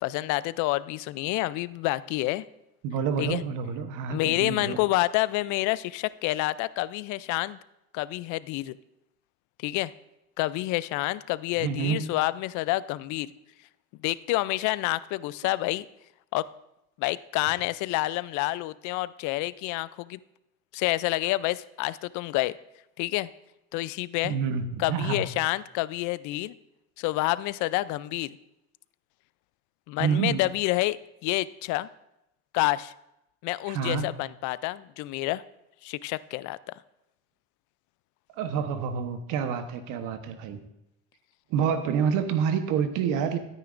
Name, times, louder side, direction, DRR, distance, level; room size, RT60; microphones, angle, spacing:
voice 1, 0.0-2.4 3.2-3.4 4.1-7.6 7.9-8.8 9.6-9.9 10.4-13.3 14.0-15.9 16.3-16.5 17.0-20.2 20.7-22.6 23.0-23.3 23.7-24.3 24.8-26.5 27.0-28.4 29.9-31.9 32.5-32.9 33.4-35.4 35.8-36.6, left 18 dB, 65° left, 18 dB, 0.5 m, -28 dB
voice 2, 2.8-4.8 11.6-12.0 24.2-25.3 30.0-30.4 33.7-34.1 38.4-40.6 41.5-43.4, right 7 dB, 70° right, 9 dB, 1.1 m, -28 dB
12.5 x 9.3 x 2.5 m, 0.87 s
supercardioid pair, 95°, 33 cm